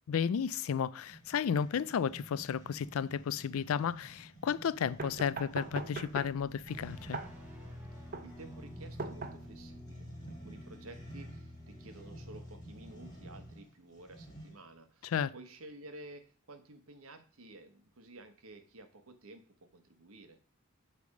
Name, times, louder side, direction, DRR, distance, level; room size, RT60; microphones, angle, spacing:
voice 1, 0.1-7.2 15.1-15.3, left 7 dB, 80° left, 0.4 m, -33 dB
sound 1, 1.0-14.7, right 1 dB, 20° left, 1.8 m, -52 dB
sound 2, 4.8-9.8, right 3 dB, 45° right, 0.7 m, -42 dB
sound 3, 6.7-13.5, left 1 dB, 5° right, 1.7 m, -49 dB
voice 2, 7.9-20.4, right 2 dB, 85° right, 1.1 m, -53 dB
8.3 x 3.4 x 6.4 m
head